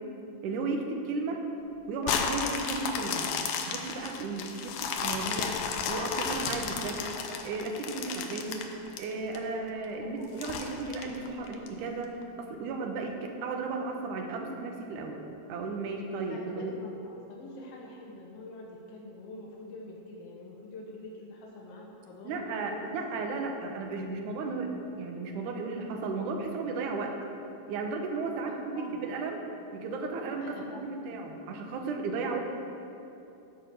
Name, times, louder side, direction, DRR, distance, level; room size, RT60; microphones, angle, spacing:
voice 1, 0.4-1.4 1.9-3.3 3.7-5.6 5.9-7.1 7.4-8.7 9.0-15.2 15.5-16.7 22.2-24.7 25.0-27.2 27.7-29.4 29.7-32.4, right 3 dB, 70° right, 3 dB, 2.3 m, -34 dB
sound 1, 2.0-9.4 9.8-9.9 10.4-11.7 12.2-12.3, left 6 dB, 85° left, 2.6 m, -33 dB
voice 2, 9.9-10.3 16.2-23.5 28.5-29.1 30.4-31.0, left 2 dB, 70° left, -2 dB, 1.5 m, -45 dB
13.0 x 5.0 x 7.5 m, 2.8 s
omnidirectional pair, 4.0 m